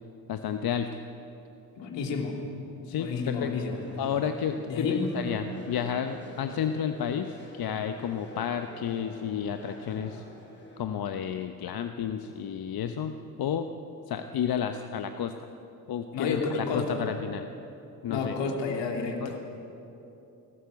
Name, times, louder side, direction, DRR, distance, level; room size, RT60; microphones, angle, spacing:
voice 1, 0.3-1.0 2.8-3.5 4.0-10.2 10.8-13.7 14.1-15.3 15.9-17.5 18.0-18.3 19.2-19.4, left 8 dB, 50° left, 8 dB, 1.1 m, -31 dB
voice 2, 1.8-2.4 3.0-3.8 4.6-5.0 16.1-17.0 18.1-19.4, left 4 dB, 65° left, 2 dB, 3.3 m, -30 dB
sound 1, 3.4-10.8, equal, 25° left, 7.2 m, -47 dB
22.5 x 18.0 x 7.9 m, 3.0 s
hypercardioid pair, 45°, 47 cm